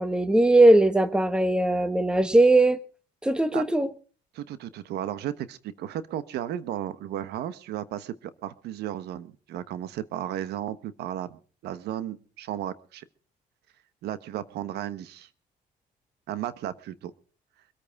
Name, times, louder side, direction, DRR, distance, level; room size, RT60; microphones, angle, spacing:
voice 1, 0.0-2.8 3.2-3.9, right 2 dB, 5° right, 12 dB, 1.3 m, -19 dB
voice 2, 4.3-13.0 14.0-15.3 16.3-17.1, right 11 dB, 75° right, 14 dB, 1.2 m, -34 dB
24.0 x 8.8 x 4.7 m, 0.39 s
cardioid pair, 110°, 17 cm